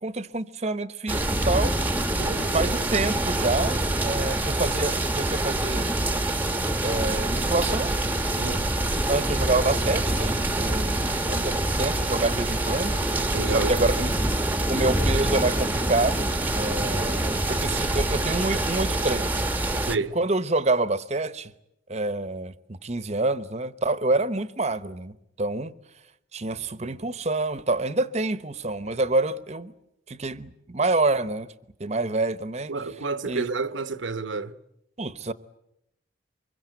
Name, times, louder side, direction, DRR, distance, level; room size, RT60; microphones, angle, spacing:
voice 1, 0.0-1.7 2.5-5.9 6.8-7.9 9.1-14.1 14.6-19.5 20.1-21.5 21.9-25.7 26.3-29.7 30.1-31.5 31.8-32.7 33.3-33.4 35.0-35.3, right 2 dB, 35° right, 0.9 m, -27 dB
sound 1, 1.1-20.0, right 1 dB, 10° right, 1.0 m, -25 dB
voice 2, 2.2-2.7 8.3-8.6 13.3-13.9 19.9-20.2 32.7-34.6, right 3 dB, 80° right, 1.0 m, -30 dB
25.0 x 22.5 x 9.2 m
head